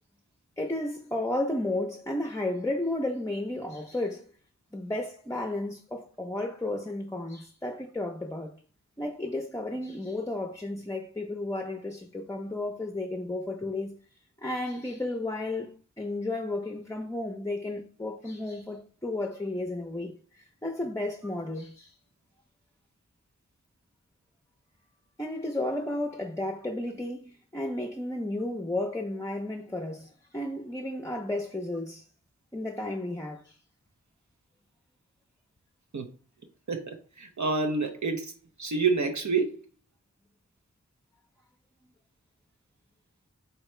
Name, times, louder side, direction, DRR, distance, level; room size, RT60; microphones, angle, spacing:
voice 1, 0.6-4.3 4.7-8.5 9.0-14.0 14.4-21.9 25.2-32.0 32.5-33.6, left 2 dB, 10° left, 0.6 m, -33 dB
voice 2, 36.7-38.3 38.6-39.6, right 4 dB, 70° right, 0.6 m, -28 dB
4.2 x 2.8 x 3.2 m
wide cardioid pair, 45°, 30 cm